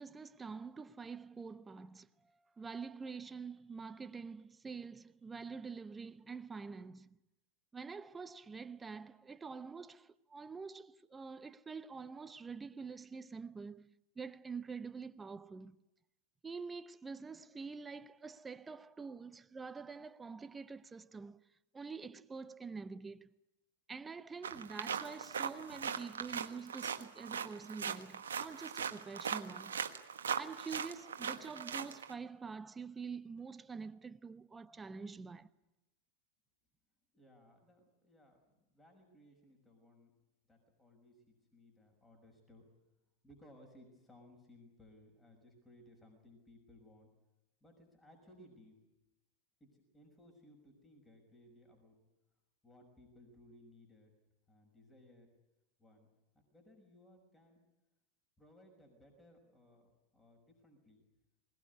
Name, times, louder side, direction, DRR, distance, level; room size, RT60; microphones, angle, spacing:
voice 1, 0.0-2.1 2.6-7.2 7.7-15.8 16.4-21.4 21.7-23.3 23.9-29.8 30.4-35.5, right 5 dB, 15° right, 0.8 m, -46 dB
sound 1, 24.4-32.1, right 7 dB, 80° right, 1.3 m, -40 dB
voice 2, 37.1-40.1 40.5-42.7 43.2-47.1 47.6-48.7 49.6-52.0 52.6-54.1 54.5-55.3 55.8-56.1 56.5-57.6 58.4-61.1, left 1 dB, 10° left, 6.1 m, -62 dB
21.0 x 19.5 x 9.6 m
hypercardioid pair, 95°, 0 cm